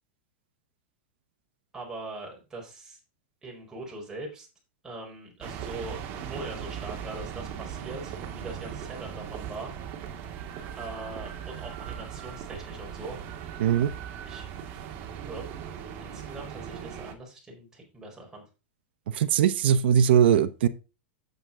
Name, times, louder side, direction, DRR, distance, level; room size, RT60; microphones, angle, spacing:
voice 1, 1.7-3.0 3.4-4.5 4.8-9.7 10.8-13.2 14.2-14.9 15.2-15.5 16.0-18.5, right 2 dB, 10° right, -2 dB, 4.5 m, -41 dB
sound 1, 5.4-17.1, right 8 dB, 45° right, 1.8 m, -39 dB
voice 2, 13.6-13.9 19.1-20.7, right 9 dB, 80° right, 10 dB, 0.9 m, -21 dB
9.0 x 8.0 x 3.8 m, 0.30 s
supercardioid pair, 140°, 6 cm